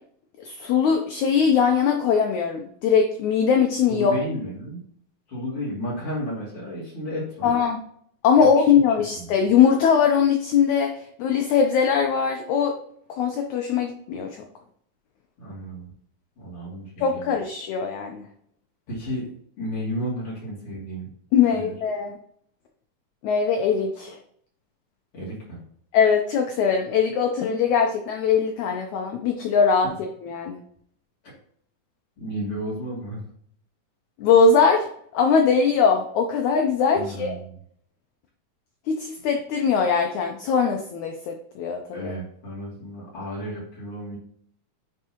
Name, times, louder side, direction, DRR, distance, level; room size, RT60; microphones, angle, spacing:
voice 1, 0.4-4.2 7.4-7.8 8.2-12.8 13.1-14.4 17.0-18.3 21.3-22.2 23.2-24.2 25.9-30.6 34.2-34.9 35.1-37.4 38.9-42.1, left 6 dB, 85° left, 3 dB, 1.7 m, -21 dB
voice 2, 3.9-4.8 5.3-7.5 8.4-8.6 9.2-9.3 15.4-15.9 16.4-17.3 18.9-19.3 19.6-21.1 21.5-21.7 25.1-25.6 32.2-33.2 36.9-37.6 41.9-44.2, equal, 40° left, -6 dB, 3.1 m, -32 dB
9.7 x 4.5 x 2.9 m, 0.65 s
omnidirectional pair, 4.2 m